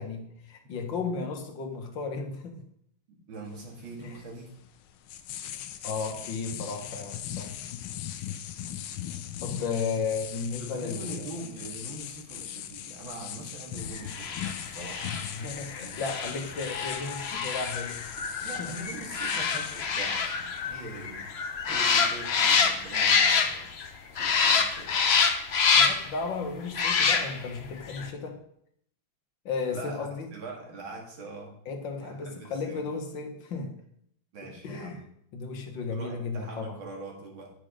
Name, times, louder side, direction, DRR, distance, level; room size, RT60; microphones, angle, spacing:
voice 1, 0.0-2.6 4.0-4.2 5.8-7.6 9.4-11.3 15.2-18.0 18.6-18.7 25.7-28.4 29.5-30.3 31.7-33.8 34.6-35.0 35.3-36.8, left 4 dB, 70° left, 4 dB, 1.9 m, -34 dB
voice 2, 3.1-4.5 8.6-8.9 10.0-10.1 10.6-15.1 15.8-16.4 18.1-21.3 21.7-23.8 24.1-25.3 29.7-31.5 31.9-32.8 34.3-35.0 35.9-37.5, right 2 dB, 75° right, 0 dB, 2.8 m, -43 dB
sound 1, 3.5-21.9, left 10 dB, 85° left, 1.5 m, -40 dB
sound 2, 14.1-23.9 24.2-26.2 26.7-27.6 27.9-28.0, left 5 dB, 55° left, 0.7 m, -26 dB
9.6 x 6.3 x 5.0 m, 0.70 s
omnidirectional pair, 2.2 m